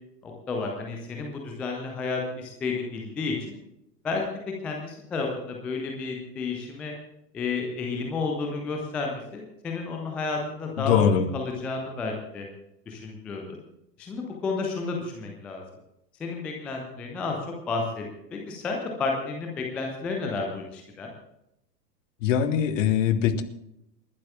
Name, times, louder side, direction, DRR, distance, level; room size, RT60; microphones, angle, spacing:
voice 1, 0.2-3.3 4.0-4.2 4.6-6.9 7.3-12.5 12.9-13.6 14.0-15.6 16.2-17.4 17.7-18.0 18.3-21.1, left 4 dB, 5° left, 1 dB, 0.3 m, -31 dB
voice 2, 10.8-11.3 22.2-23.4, left 8 dB, 50° left, 9 dB, 1.8 m, -22 dB
29.0 x 11.5 x 2.3 m, 0.83 s
figure-of-eight pair, 100°, 50 cm